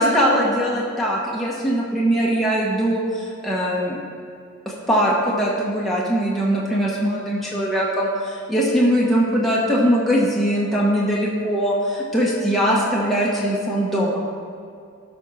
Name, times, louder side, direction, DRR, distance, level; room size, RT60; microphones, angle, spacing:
voice 1, 0.0-4.0 4.6-14.3, equal, ahead, -6 dB, 1.2 m, -21 dB
12.5 x 5.6 x 4.1 m, 2.4 s
head